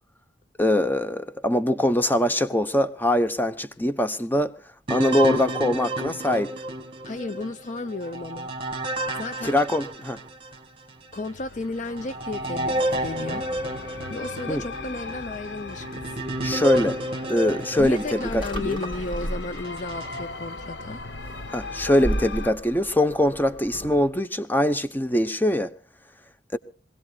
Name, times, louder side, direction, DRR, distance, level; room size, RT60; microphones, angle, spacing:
voice 1, 0.6-4.5 4.9-6.5 9.4-10.2 14.5-14.6 16.4-17.0 17.3-18.8 21.5-25.7 26.5-26.6, left 1 dB, 10° left, 1.0 m, -23 dB
sound 1, 4.9-10.6 11.2-11.3 11.8-19.0 19.6-20.2, right 1 dB, 30° right, 2.2 m, -31 dB
voice 2, 7.0-8.5 8.8-9.6 11.1-13.5 14.1-16.2 17.8-21.0, left 2 dB, 45° left, 0.6 m, -33 dB
sound 2, 11.1-22.5, left 3 dB, 65° left, 1.0 m, -39 dB
sound 3, 17.8-24.1, right 1 dB, 25° left, 3.5 m, -35 dB
24.5 x 17.5 x 2.4 m
head